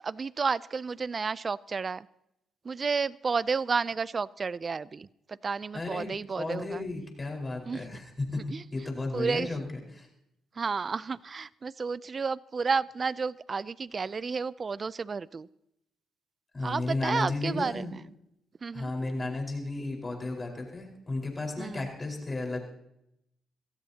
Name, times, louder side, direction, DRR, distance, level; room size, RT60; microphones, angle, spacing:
voice 1, 0.0-2.1 2.6-6.8 7.7-8.0 8.5-8.6 9.1-9.5 10.6-15.5 16.6-17.9 18.6-18.9 21.6-21.8, right 5 dB, 35° right, 19 dB, 0.4 m, -31 dB
voice 2, 5.7-6.1 6.4-8.4 8.7-9.7 9.9-10.1 16.5-18.0 18.7-22.6, left 2 dB, 25° left, 1 dB, 4.7 m, -33 dB
24.5 x 15.5 x 2.9 m, 0.81 s
cardioid pair, 90°, 0 cm